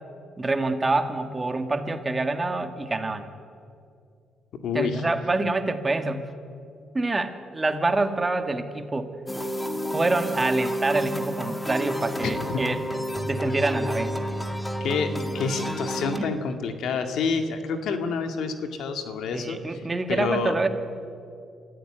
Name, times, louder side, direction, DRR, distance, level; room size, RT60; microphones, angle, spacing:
voice 1, 0.4-3.2 4.7-6.3 6.9-9.1 9.9-12.8 13.2-14.1 16.2-16.4 19.3-20.7, right 2 dB, 25° right, 7 dB, 1.9 m, -26 dB
voice 2, 4.6-5.0 12.2-12.4 14.8-20.5, left 5 dB, 75° left, 6 dB, 2.2 m, -28 dB
sound 1, 9.3-16.2, equal, 10° left, 1.8 m, -30 dB
26.5 x 15.0 x 9.2 m, 2.4 s
cardioid pair, 90°, 0 cm